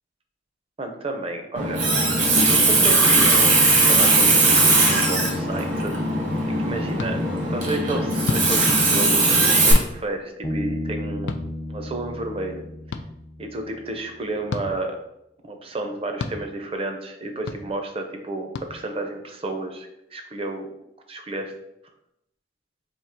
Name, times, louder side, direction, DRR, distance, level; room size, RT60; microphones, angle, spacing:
voice 1, 0.8-1.8 2.5-5.9 6.5-7.2 7.5-12.7 13.4-15.0 15.4-20.7 21.1-21.5, right 2 dB, 35° right, 4 dB, 0.6 m, -31 dB
Water tap faucet, 1.6-9.7, right 2 dB, 70° right, 1.3 m, -19 dB
sound 1, 7.0-7.1 8.2-8.5 9.7-9.9 11.3-11.4 12.9-13.0 14.5-14.7 16.2-16.4 17.5-17.6 18.5-18.7, left 4 dB, 70° left, 0.4 m, -29 dB
Bass guitar, 10.4-13.9, left 1 dB, 15° left, 0.4 m, -33 dB
3.6 x 2.8 x 4.3 m, 0.81 s
head